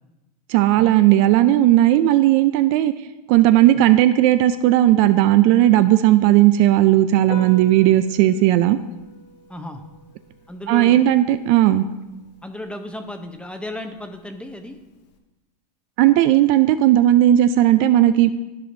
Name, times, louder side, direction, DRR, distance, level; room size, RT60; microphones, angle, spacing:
voice 1, 0.5-2.9 3.3-8.8 10.7-11.8 16.0-18.3, right 13 dB, 50° right, 11 dB, 0.4 m, -15 dB
Piano, 7.2-15.2, left 2 dB, 85° left, 1.0 m, -45 dB
voice 2, 9.5-9.8 10.5-11.1 12.4-14.8, left 1 dB, 5° left, 6 dB, 0.6 m, -34 dB
13.0 x 5.1 x 2.7 m, 1.1 s
hypercardioid pair, 115°, 21 cm